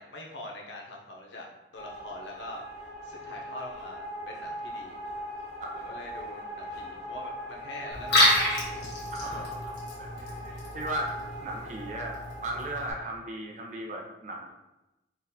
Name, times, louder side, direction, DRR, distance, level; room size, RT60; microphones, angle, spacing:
voice 1, 0.0-1.5 1.7-5.0 5.7-8.2 9.3-9.4, left 1 dB, 80° left, -1 dB, 0.7 m, -43 dB
sound 1, 1.8-12.9, equal, 40° left, 0.5 m, -40 dB
Liquid, 7.9-12.9, left 1 dB, 60° left, 1.2 m, -29 dB
voice 2, 9.1-9.7 10.0-11.1 11.4-14.5, right 1 dB, 40° right, 0 dB, 0.5 m, -37 dB
3.9 x 2.4 x 2.7 m, 0.98 s
head